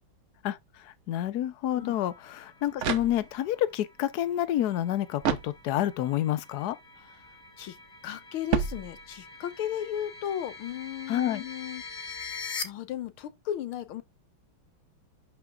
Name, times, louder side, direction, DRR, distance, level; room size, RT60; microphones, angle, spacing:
voice 1, 1.1-6.8 11.1-11.5, left 12 dB, 60° left, 1.2 m, -28 dB
sound 1, 1.7-12.6, left 4 dB, 40° left, 1.2 m, -44 dB
sound 2, 2.3-3.6 5.2-6.1 8.5-9.4, right 8 dB, 70° right, 0.7 m, -32 dB
voice 2, 8.0-11.8 12.6-14.0, left 10 dB, 85° left, 1.8 m, -35 dB
11.0 x 5.7 x 2.4 m
omnidirectional pair, 2.3 m